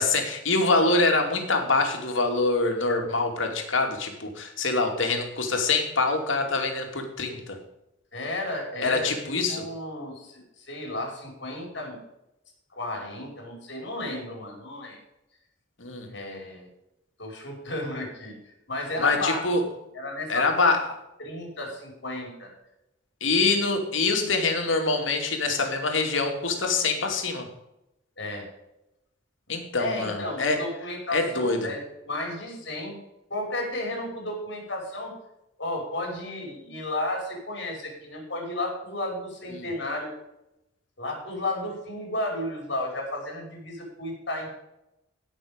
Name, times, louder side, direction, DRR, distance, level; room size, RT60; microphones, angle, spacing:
voice 1, 0.0-7.6 8.8-9.6 15.8-16.1 19.0-19.6 20.3-20.8 23.2-27.5 29.5-30.6 31.1-31.7, left 3 dB, 90° left, 3 dB, 2.6 m, -25 dB
voice 2, 8.1-9.1 9.5-12.0 12.7-15.0 16.1-16.7 17.2-19.4 19.9-20.7 21.2-22.5 28.2-28.5 29.8-33.0 33.3-35.1 35.6-40.1 41.0-44.5, left 1 dB, 65° left, 0 dB, 5.2 m, -33 dB
17.0 x 6.5 x 5.2 m, 0.87 s
head